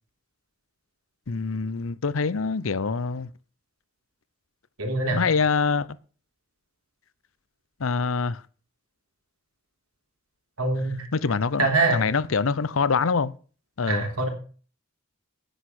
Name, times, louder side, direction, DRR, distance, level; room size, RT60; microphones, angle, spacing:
voice 1, 1.3-3.3 5.1-6.0 7.8-8.4 11.1-13.3 13.8-14.1, left 4 dB, 70° left, 0.6 m, -25 dB
voice 2, 4.8-5.2 10.6-11.1 11.6-12.1 13.9-14.3, right 2 dB, 85° right, 3.7 m, -24 dB
10.0 x 8.3 x 6.1 m
head